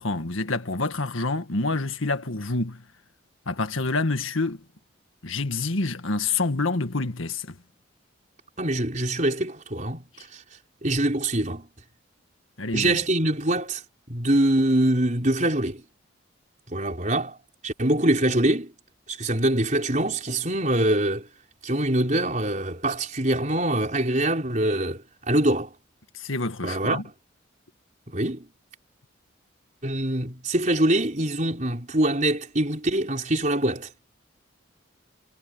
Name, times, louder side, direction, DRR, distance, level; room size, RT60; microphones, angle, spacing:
voice 1, 0.0-2.8 3.5-4.6 5.2-7.6 12.6-13.0 26.1-27.0, left 3 dB, 80° left, 1.8 m, -27 dB
voice 2, 8.6-10.0 10.3-10.4 10.8-11.7 12.7-13.8 14.1-15.8 16.7-17.4 17.6-18.7 19.1-21.3 21.6-25.7 26.6-27.0 28.1-28.5 29.8-33.9, right 1 dB, 35° right, 4.9 m, -24 dB
head